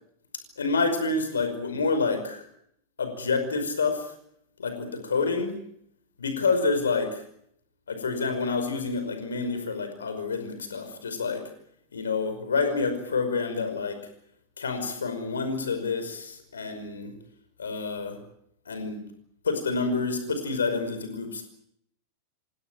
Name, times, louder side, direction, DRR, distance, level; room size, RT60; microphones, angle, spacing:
voice 1, 0.6-2.5 3.0-4.1 4.6-5.6 6.2-7.2 7.9-11.4 11.9-14.0 14.6-17.1 17.6-18.2 18.7-19.0 19.4-21.4, left 4 dB, 70° left, 7 dB, 5.3 m, -28 dB
27.5 x 17.0 x 9.1 m, 0.72 s
figure-of-eight pair, 90°, 0 cm